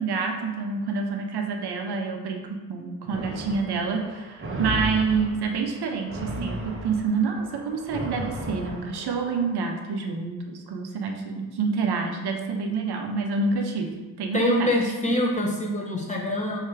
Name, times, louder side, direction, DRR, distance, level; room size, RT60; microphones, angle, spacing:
voice 1, 0.0-14.7, right 4 dB, 60° right, 4 dB, 0.7 m, -28 dB
sound 1, 3.1-9.5, right 1 dB, 30° right, 0.7 m, -35 dB
voice 2, 14.3-16.6, left 1 dB, 15° left, -1 dB, 1.1 m, -25 dB
3.2 x 2.8 x 4.5 m, 1.2 s
supercardioid pair, 55°, 43 cm